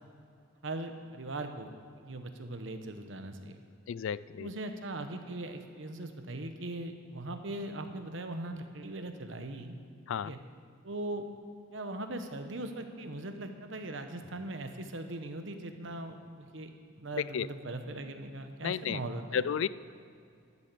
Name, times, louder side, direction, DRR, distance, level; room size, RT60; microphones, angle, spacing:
voice 1, 0.6-1.7 2.0-3.6 4.4-9.8 10.2-10.4 10.8-11.3 11.7-16.7 17.0-19.4, right 2 dB, 70° right, 7 dB, 1.1 m, -40 dB
voice 2, 3.9-4.5 10.1-10.3 17.3-17.5 18.6-19.0 19.3-19.7, left 7 dB, 75° left, 19 dB, 0.3 m, -32 dB
12.5 x 7.1 x 8.4 m, 2.4 s
head